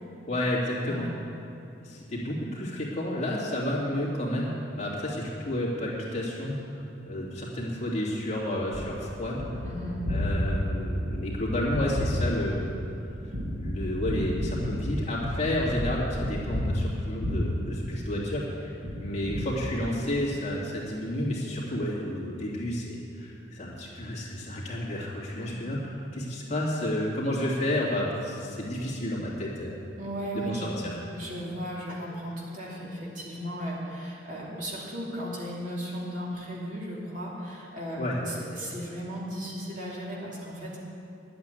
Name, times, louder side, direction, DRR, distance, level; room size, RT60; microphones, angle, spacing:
voice 1, 0.3-1.1 1.8-9.4 10.1-12.7 13.1-13.2 13.6-29.8 30.3-31.0 38.0-38.2, left 1 dB, 40° left, -5 dB, 2.7 m, -31 dB
Gunshot gunfire, 8.7-18.4 18.8-20.3, equal, 60° right, 2.2 m, -32 dB
voice 2, 9.6-10.1 25.4-25.5 30.0-40.8, equal, 45° right, -4 dB, 2.8 m, -36 dB
11.0 x 8.6 x 9.3 m, 2.8 s
head